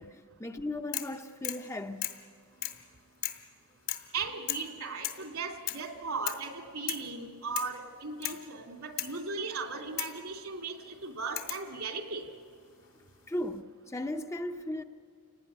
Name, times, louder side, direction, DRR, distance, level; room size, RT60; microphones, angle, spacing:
voice 1, 0.0-2.2 13.3-14.8, left 1 dB, 15° left, 0.7 m, -37 dB
sound 1, 0.9-1.2 1.4-1.7 2.0-2.2 2.6-2.8 3.2-3.5 3.9-4.1 4.5-4.7 5.0-5.3 5.7-5.9 6.3-6.5 6.9-7.1 7.5-7.8 8.2-8.4 9.0-9.2 10.0-10.2 11.4-11.7 12.8-13.3, left 13 dB, 65° left, 2.3 m, -36 dB
voice 2, 4.1-12.2, right 4 dB, 80° right, 2.8 m, -37 dB
29.5 x 19.0 x 9.8 m
head